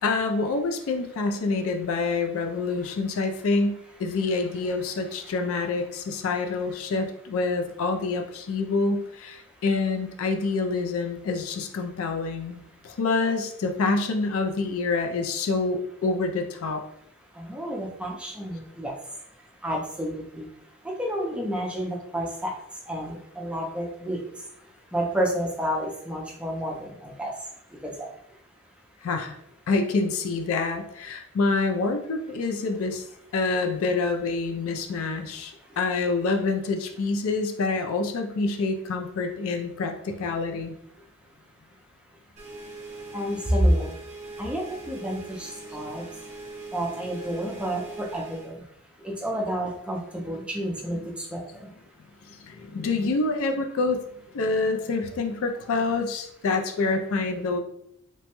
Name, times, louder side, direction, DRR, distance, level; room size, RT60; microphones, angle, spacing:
voice 1, 0.0-16.8 29.0-29.4 29.7-33.0 33.3-40.8 52.5-54.0 54.3-57.6, left 3 dB, 65° left, 5 dB, 0.4 m, -27 dB
voice 2, 17.3-18.9 19.6-20.5 20.8-22.6 22.9-24.2 24.9-27.3 27.7-28.1 43.1-43.9 44.4-46.1 46.7-48.6 49.0-51.7, equal, 5° right, -2 dB, 0.5 m, -29 dB
sound 1, 42.4-48.5, right 3 dB, 30° right, 0.9 m, -41 dB
2.9 x 2.2 x 2.9 m, 0.74 s
head